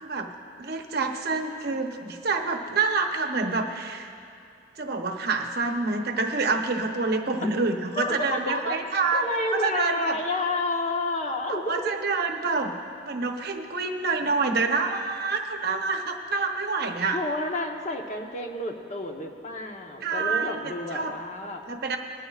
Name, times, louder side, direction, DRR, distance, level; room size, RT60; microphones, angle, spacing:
voice 1, 0.0-0.3 0.6-4.1 4.8-9.2 9.5-10.2 11.5-12.8 13.0-17.2 20.0-21.1 21.7-22.0, right 4 dB, 60° right, 4 dB, 0.9 m, -27 dB
voice 2, 8.0-8.8 9.1-11.9 16.3-16.4 17.1-21.6, left 2 dB, 40° left, 2 dB, 1.0 m, -30 dB
19.5 x 13.0 x 2.4 m, 2.6 s
head